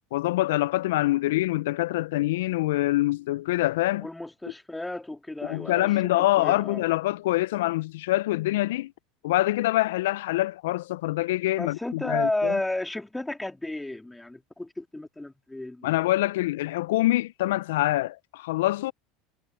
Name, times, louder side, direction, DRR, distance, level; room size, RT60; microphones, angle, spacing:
voice 1, 0.1-4.1 5.4-8.9 9.2-12.6 15.8-18.9, left 17 dB, 75° left, 0.5 m, -25 dB
voice 2, 4.0-6.8 11.6-15.9, left 2 dB, 10° left, 2.9 m, -32 dB
hypercardioid pair, 80°, 0 cm